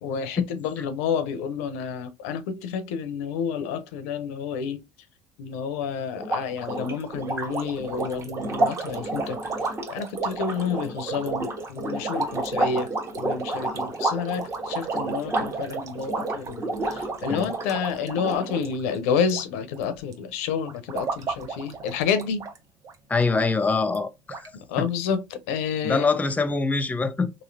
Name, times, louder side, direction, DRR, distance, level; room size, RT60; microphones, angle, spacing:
voice 1, 0.0-4.8 5.4-9.4 9.9-22.4 24.5-26.0, left 6 dB, 85° left, 0.5 m, -29 dB
sound 1, 6.2-17.8 18.1-19.0, right 2 dB, 35° right, 1.1 m, -30 dB
sound 2, 6.7-19.4 19.7-20.1 20.6-22.6 22.8-22.9 23.3-23.4 23.9-24.0 24.3-24.5, right 5 dB, 50° right, 0.7 m, -35 dB
voice 2, 23.1-24.5 24.8-24.9 25.8-27.3, left 4 dB, 20° left, 0.6 m, -24 dB
3.0 x 2.7 x 2.5 m
supercardioid pair, 75°, 8 cm